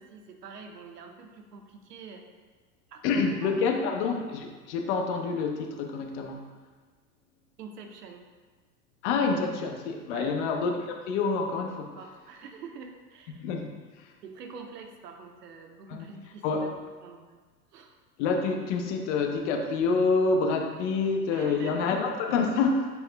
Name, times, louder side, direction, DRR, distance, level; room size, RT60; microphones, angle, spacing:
voice 1, 0.0-2.2 2.9-3.9 7.6-8.3 10.1-10.4 11.9-13.4 14.2-16.7 17.0-17.4 17.7-18.0 21.3-22.0, right 5 dB, 75° right, 4 dB, 0.7 m, -45 dB
voice 2, 3.0-6.4 9.0-12.0 13.3-14.1 15.9-16.1 16.4-16.6 18.2-22.9, left 4 dB, 45° left, 3 dB, 0.7 m, -27 dB
6.0 x 2.3 x 3.3 m, 1.4 s
figure-of-eight pair, 90°, 48 cm